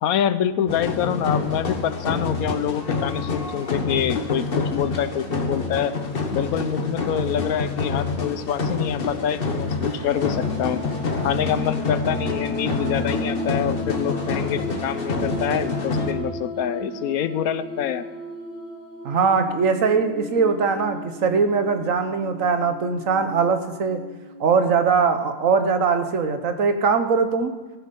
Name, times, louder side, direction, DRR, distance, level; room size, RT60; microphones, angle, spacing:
voice 1, 0.0-5.9 6.3-10.8 11.2-18.1, left 9 dB, 90° left, 13 dB, 1.2 m, -26 dB
sound 1, 0.7-16.1, left 3 dB, 40° left, 1.4 m, -27 dB
sound 2, 9.6-24.4, left 1 dB, 10° left, 3.2 m, -34 dB
voice 2, 19.0-24.0 24.4-27.5, right 5 dB, 65° right, 8 dB, 1.4 m, -21 dB
15.0 x 9.8 x 5.4 m, 1.3 s
omnidirectional pair, 1.5 m